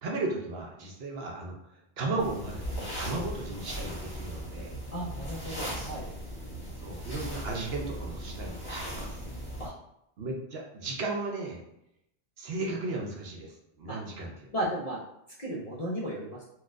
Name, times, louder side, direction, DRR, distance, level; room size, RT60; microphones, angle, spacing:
voice 1, 0.0-4.8 6.8-9.2 10.2-11.6 12.4-14.5, right 2 dB, 65° right, 0 dB, 0.8 m, -35 dB
sound 1, 2.2-9.7, equal, 20° left, 1.0 m, -38 dB
voice 2, 4.9-6.1 9.6-9.7 13.9-14.0 14.5-15.0 15.4-16.4, right 1 dB, 45° left, -4 dB, 0.5 m, -34 dB
3.9 x 2.3 x 2.4 m, 0.80 s
omnidirectional pair, 1.2 m